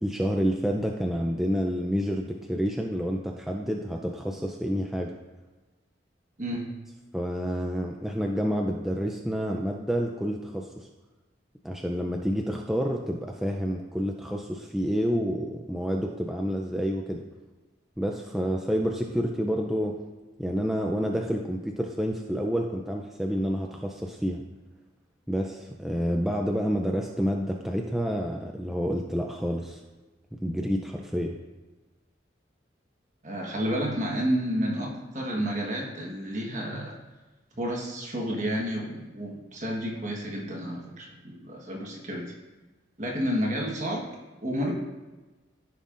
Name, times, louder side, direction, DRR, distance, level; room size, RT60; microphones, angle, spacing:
voice 1, 0.0-5.1 7.1-10.9 11.6-17.2 18.0-20.0 20.4-24.4 25.3-29.8 30.3-31.4, equal, ahead, 0 dB, 0.4 m, -29 dB
voice 2, 33.2-37.0 37.6-42.3 43.0-44.0 44.4-44.7, equal, 40° right, -1 dB, 1.3 m, -30 dB
14.5 x 5.4 x 2.5 m, 1.2 s
head